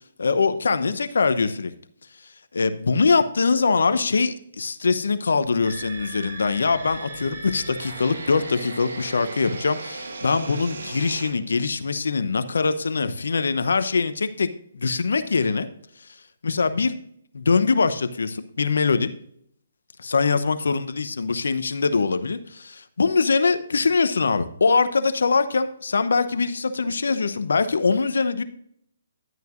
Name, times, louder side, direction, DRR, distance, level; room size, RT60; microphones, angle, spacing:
voice 1, 0.2-1.7 2.5-14.5 14.7-15.7 16.4-16.9 17.3-19.1 20.0-28.4, left 4 dB, 75° left, 11 dB, 0.8 m, -23 dB
sound 1, 5.6-11.3, right 3 dB, 70° right, 1.4 m, -37 dB
11.0 x 9.2 x 2.5 m, 0.68 s
figure-of-eight pair, 140°, 0 cm